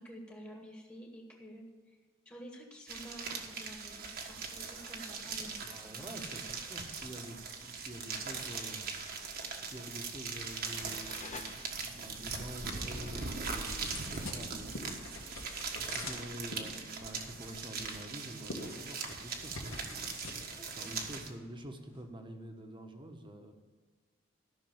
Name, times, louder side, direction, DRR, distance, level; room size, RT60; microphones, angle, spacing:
voice 1, 0.0-2.0 2.2-6.2 14.4-14.8 20.6-20.9, equal, 15° left, 0 dB, 1.7 m, -50 dB
sound 1, 2.9-21.3, right 4 dB, 45° right, 1.5 m, -40 dB
voice 2, 5.7-9.1 9.6-15.1 15.6-23.5, right 1 dB, 25° right, 5 dB, 1.3 m, -47 dB
sound 2, 9.8-12.2, left 5 dB, 35° left, 0.6 m, -51 dB
sound 3, 11.8-22.0, left 2 dB, 90° left, 2.5 m, -48 dB
14.0 x 6.3 x 7.2 m, 1.4 s
head